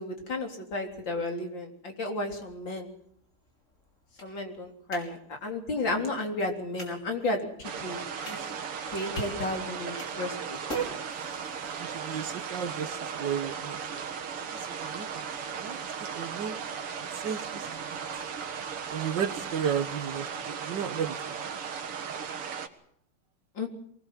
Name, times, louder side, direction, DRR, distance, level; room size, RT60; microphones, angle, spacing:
voice 1, 0.0-2.9 4.2-8.4 8.8-10.6 23.6-23.7, left 2 dB, 60° left, 4 dB, 4.4 m, -33 dB
sound 1, 2.3-20.2, left 1 dB, 35° left, 6.2 m, -51 dB
sound 2, 7.6-22.7, right 6 dB, 90° right, 2.6 m, -36 dB
voice 2, 11.8-13.8 14.7-16.6 17.0-18.0 18.9-21.4, right 8 dB, 60° right, 12 dB, 1.7 m, -34 dB
23.5 x 19.5 x 7.5 m, 0.66 s
omnidirectional pair, 2.4 m